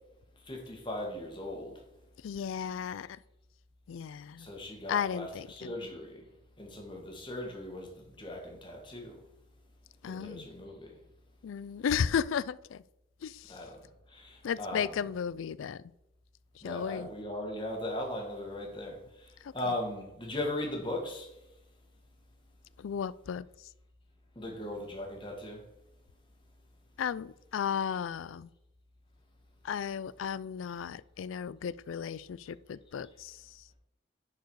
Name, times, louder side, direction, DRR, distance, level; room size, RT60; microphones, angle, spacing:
voice 1, 0.4-1.8 4.4-6.2 6.6-9.2 10.1-11.0 13.5-13.8 14.1-15.0 16.6-21.3 24.4-25.6, left 1 dB, 25° left, 1.8 m, -38 dB
voice 2, 2.2-3.2 3.9-4.5 4.9-5.7 10.0-10.5 11.4-12.8 13.2-13.5 14.4-15.8 16.6-17.1 19.4-19.5 22.8-23.5 27.0-28.5 29.6-33.4, left 7 dB, 90° left, 0.4 m, -34 dB
10.5 x 4.8 x 4.7 m
head